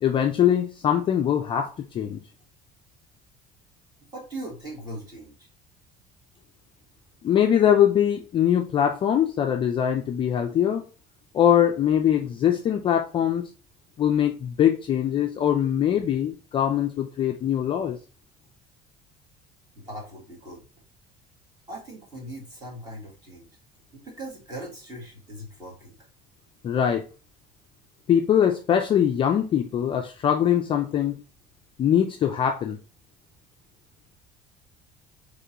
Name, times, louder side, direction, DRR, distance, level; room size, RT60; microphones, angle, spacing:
voice 1, 0.0-2.2 7.2-10.8 11.3-13.5 14.0-18.0 26.6-27.1 28.1-31.2 31.8-32.8, left 9 dB, 30° left, 0.4 m, -22 dB
voice 2, 4.1-5.5 19.8-20.6 21.7-23.5 23.9-26.0, right 1 dB, 25° right, 1.9 m, -39 dB
3.8 x 3.2 x 2.8 m
cardioid pair, 165°, 17 cm